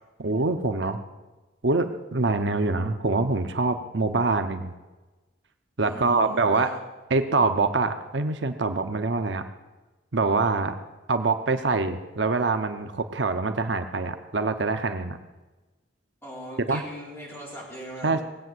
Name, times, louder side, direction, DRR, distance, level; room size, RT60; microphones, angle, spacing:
voice 1, 0.2-1.0 1.6-4.7 5.8-6.7 7.1-9.4 10.1-10.7 11.1-15.2 16.7-16.8 18.0-18.2, right 3 dB, 65° right, 8 dB, 0.9 m, -25 dB
voice 2, 5.8-6.8 16.2-18.2, equal, 15° left, -4 dB, 5.0 m, -40 dB
19.0 x 8.3 x 7.9 m, 1.2 s
head